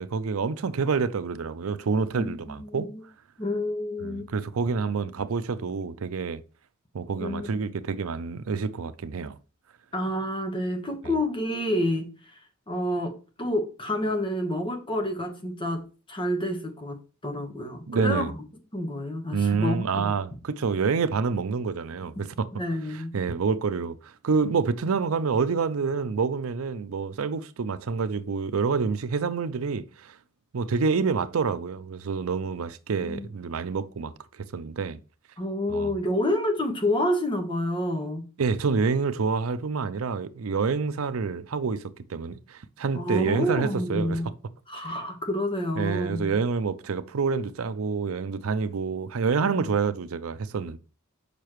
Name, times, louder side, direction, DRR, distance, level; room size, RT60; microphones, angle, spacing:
voice 1, 0.0-2.9 4.0-6.4 6.9-9.4 17.9-18.3 19.3-22.5 22.9-30.2 30.5-35.0 35.7-35.9 38.4-44.2 44.7-45.0 45.8-50.8, right 5 dB, 80° right, 0.5 m, -27 dB
voice 2, 2.6-3.0 3.4-4.2 7.2-7.5 9.9-12.1 12.7-13.1 13.4-18.4 18.7-20.0 22.5-23.1 33.1-33.2 35.4-38.3 42.9-44.3 44.7-46.3 49.5-49.7, left 1 dB, 25° left, 1.2 m, -28 dB
6.7 x 5.6 x 3.1 m
head